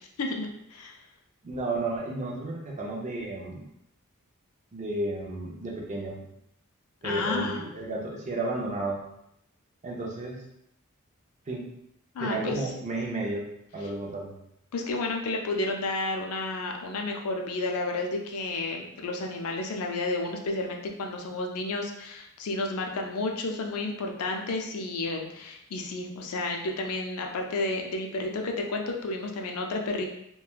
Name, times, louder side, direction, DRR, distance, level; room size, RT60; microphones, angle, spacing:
voice 1, 0.2-0.9 7.0-7.7 12.1-12.7 14.7-30.1, left 2 dB, 75° left, 2 dB, 0.4 m, -31 dB
voice 2, 1.4-3.6 4.7-6.2 7.0-9.0 9.8-10.4 11.5-11.6 12.2-13.5 13.7-14.3, right 2 dB, 35° right, -2 dB, 0.5 m, -32 dB
3.2 x 2.2 x 2.3 m, 0.79 s
head